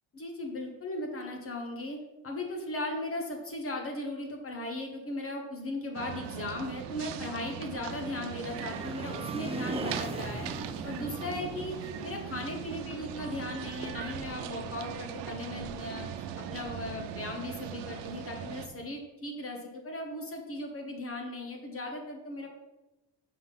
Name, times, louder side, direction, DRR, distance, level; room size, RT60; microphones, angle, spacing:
voice 1, 0.1-2.0 2.2-10.5 10.8-22.5, left 1 dB, 35° left, 2 dB, 1.2 m, -37 dB
sound 1, 5.9-18.7, right 9 dB, 90° right, 0.7 m, -40 dB
sound 2, 7.5-14.0, right 3 dB, 15° right, 0.5 m, -41 dB
5.8 x 5.7 x 5.6 m, 1.0 s
cardioid pair, 145°, 41 cm